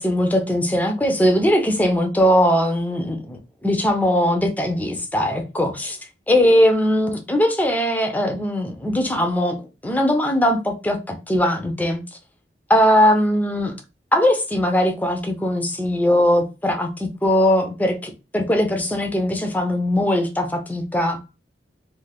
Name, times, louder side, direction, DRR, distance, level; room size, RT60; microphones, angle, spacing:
voice 1, 0.0-6.0 6.3-12.0 12.7-13.7 14.1-21.2, equal, 10° left, 0.4 m, -20 dB
2.4 x 2.4 x 3.3 m
head